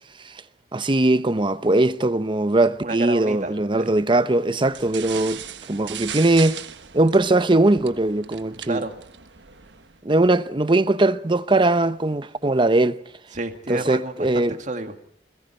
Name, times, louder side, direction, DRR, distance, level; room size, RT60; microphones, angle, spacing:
voice 1, 0.7-5.4 5.7-6.6 6.9-8.8 10.0-13.0 13.7-14.6, right 2 dB, 30° right, 0.8 m, -20 dB
voice 2, 2.8-3.9 8.6-8.9 13.3-15.0, right 2 dB, 45° right, 2.1 m, -30 dB
sound 1, 4.7-10.0, right 9 dB, 85° right, 1.3 m, -38 dB
29.0 x 21.5 x 4.4 m
head